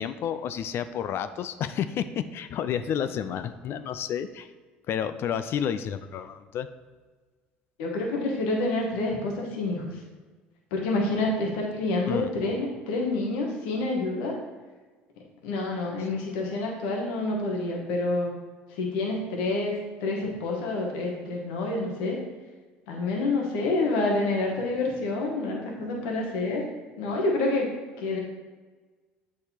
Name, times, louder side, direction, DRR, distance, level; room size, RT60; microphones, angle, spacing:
voice 1, 0.0-4.5 4.9-6.7 12.1-12.2, left 8 dB, 55° left, 12 dB, 0.4 m, -30 dB
voice 2, 7.8-9.8 10.7-14.4 15.4-18.3 18.7-22.2 22.9-26.6 27.0-27.7 28.0-28.2, left 2 dB, 75° left, -1 dB, 1.2 m, -28 dB
7.9 x 4.7 x 2.9 m, 1.4 s
hypercardioid pair, 70°, 5 cm